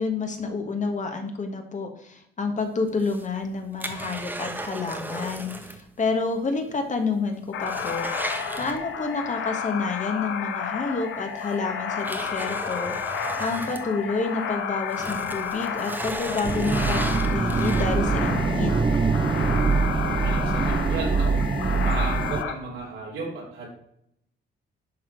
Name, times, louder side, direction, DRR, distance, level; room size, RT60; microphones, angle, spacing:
voice 1, 0.0-8.1 8.6-12.9 13.4-18.7, left 4 dB, 40° left, 5 dB, 1.4 m, -29 dB
sound 1, 2.9-5.9 6.1-6.2 6.7-6.8 7.2-9.2 10.6-10.7 11.4-14.5 14.8-18.2 18.7-18.8, right 1 dB, 10° right, 1.1 m, -35 dB
sound 2, 7.5-22.5, left 7 dB, 85° left, 1.0 m, -31 dB
sound 3, 16.4-22.4, right 4 dB, 25° right, 0.6 m, -24 dB
voice 2, 20.0-21.4 21.7-23.7, right 3 dB, 85° right, -3 dB, 3.4 m, -34 dB
11.0 x 3.7 x 4.5 m, 0.76 s
cardioid pair, 90°, 20 cm